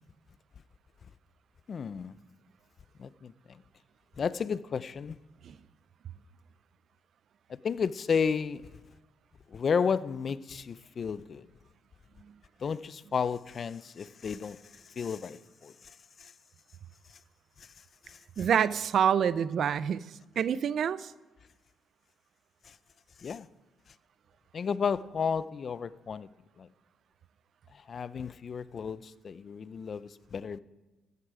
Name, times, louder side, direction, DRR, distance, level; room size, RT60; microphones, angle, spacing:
voice 1, 1.7-2.1 3.0-3.3 4.2-5.2 7.5-8.8 9.5-11.5 12.6-14.6 15.0-15.7 16.2-16.3 18.1-18.2 23.2-23.5 24.5-26.3 26.6-26.7 27.9-30.6, left 6 dB, 45° left, 0.5 m, -32 dB
voice 2, 18.4-20.0 20.4-21.1, right 8 dB, 60° right, 0.5 m, -27 dB
14.0 x 9.6 x 4.9 m
cardioid pair, 90°, 0 cm